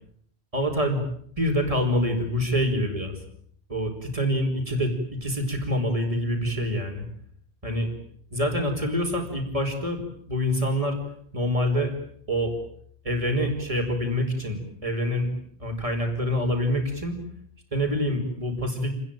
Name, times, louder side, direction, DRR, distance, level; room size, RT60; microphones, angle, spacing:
voice 1, 0.5-1.0 1.4-3.2 3.7-7.0 7.6-7.9 8.3-11.0 11.3-11.9 12.3-12.5 13.0-15.3 15.6-17.2 17.7-19.0, equal, 30° right, 4 dB, 5.1 m, -26 dB
28.5 x 20.5 x 9.2 m, 0.65 s
omnidirectional pair, 1.1 m